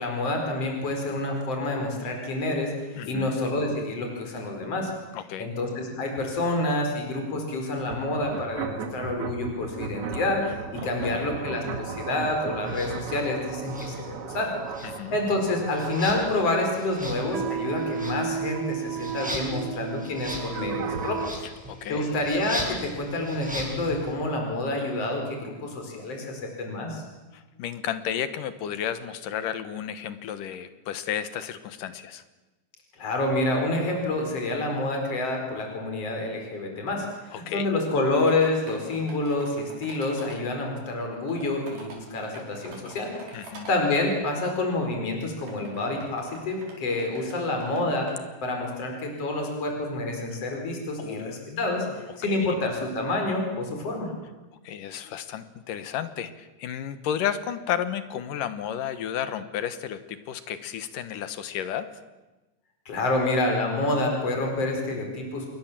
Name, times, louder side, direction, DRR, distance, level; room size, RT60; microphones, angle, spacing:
voice 1, 0.0-4.9 5.4-14.5 15.1-21.2 21.9-27.0 33.0-43.1 43.7-48.1 48.4-54.1 62.9-65.5, left 2 dB, 45° left, 2 dB, 5.6 m, -28 dB
voice 2, 3.0-3.4 5.1-5.5 11.0-11.3 14.8-15.2 21.4-22.2 27.3-32.2 37.3-37.7 43.3-43.7 51.0-51.9 52.3-52.6 54.6-61.9, left 9 dB, 75° left, 12 dB, 2.8 m, -33 dB
sound 1, 7.8-21.3, right 6 dB, 50° right, 2.2 m, -35 dB
sound 2, 12.7-12.9 13.7-14.4 14.7-24.1, equal, ahead, 7.1 m, -39 dB
sound 3, 38.2-40.4 41.2-43.7 44.6-44.7 45.4-48.1, right 3 dB, 65° right, 6.4 m, -46 dB
28.0 x 21.5 x 7.5 m, 1.1 s
omnidirectional pair, 3.9 m